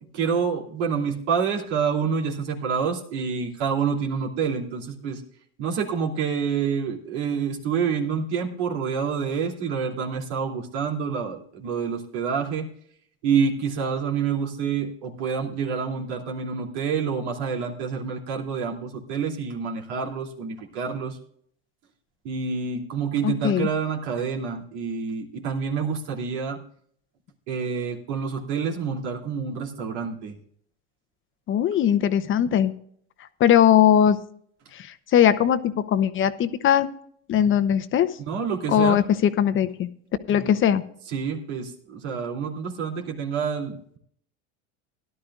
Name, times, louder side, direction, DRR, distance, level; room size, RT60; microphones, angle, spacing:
voice 1, 0.1-5.2 5.6-12.7 13.2-21.2 22.2-26.6 27.5-30.4 38.2-39.0 40.3-40.5 41.1-44.0, right 6 dB, 75° right, 0 dB, 2.9 m, -27 dB
voice 2, 23.2-23.7 31.5-32.7 33.4-34.2 34.7-36.9 37.3-38.1 38.7-39.9 40.3-40.8, left 9 dB, 35° left, 12 dB, 0.9 m, -20 dB
17.0 x 11.5 x 2.5 m, 0.64 s
supercardioid pair, 105°, 34 cm